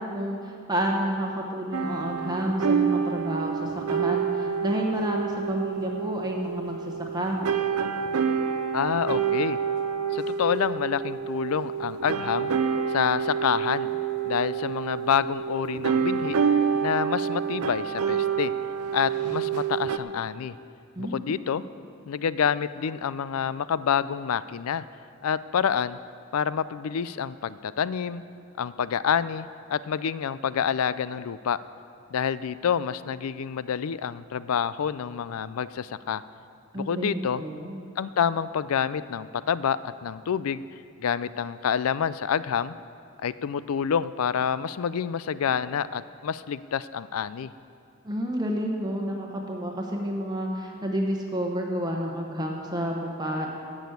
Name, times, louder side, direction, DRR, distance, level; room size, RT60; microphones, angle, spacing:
voice 1, 0.0-7.4 20.9-21.4 36.7-37.8 48.0-53.5, equal, 20° right, 0 dB, 1.1 m, -30 dB
sound 1, 1.7-20.0, right 7 dB, 85° right, 0.6 m, -28 dB
voice 2, 8.7-9.6 10.1-12.5 12.9-13.9 14.3-16.4 16.8-18.5 18.9-20.5 21.0-21.6 22.1-24.8 25.2-26.0 26.3-28.2 28.6-31.6 32.1-36.2 36.7-37.4 38.0-40.6 41.0-42.7 43.2-47.5, left 7 dB, 75° left, 16 dB, 0.4 m, -27 dB
15.0 x 6.2 x 8.1 m, 2.4 s
head